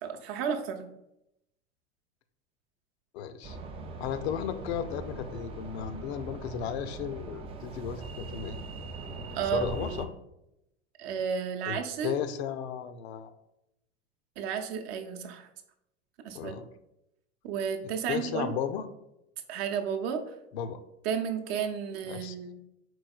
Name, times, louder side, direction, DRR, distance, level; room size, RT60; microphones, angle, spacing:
voice 1, 0.0-0.9 9.3-9.7 11.0-12.2 14.4-15.5 16.2-16.6 17.4-18.5 19.5-20.2 21.0-22.6, right 7 dB, 55° right, 5 dB, 0.7 m, -32 dB
voice 2, 3.1-3.6 4.0-8.6 9.4-10.1 11.7-13.3 16.3-16.7 18.1-18.9 20.5-20.8 22.1-22.4, left 8 dB, 60° left, 11 dB, 0.5 m, -34 dB
sound 1, 3.4-10.1, right 3 dB, 15° right, 0.3 m, -41 dB
4.6 x 4.0 x 2.3 m, 0.84 s
figure-of-eight pair, 80°, 38 cm